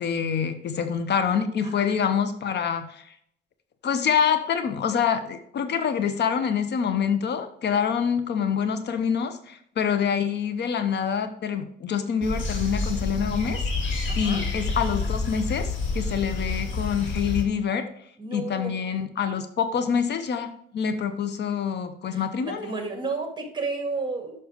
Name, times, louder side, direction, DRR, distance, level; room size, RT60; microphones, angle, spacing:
voice 1, 0.0-3.1 3.8-15.7 15.9-17.9 18.3-22.7, left 7 dB, 60° left, 10 dB, 0.8 m, -26 dB
voice 2, 1.6-2.2 14.1-14.4 18.2-18.8 22.1-24.3, right 3 dB, 25° right, 4 dB, 2.0 m, -32 dB
sound 1, 12.2-17.4, left 3 dB, 75° left, 2.2 m, -28 dB
6.5 x 5.9 x 5.0 m, 0.69 s
cardioid pair, 90°, 20 cm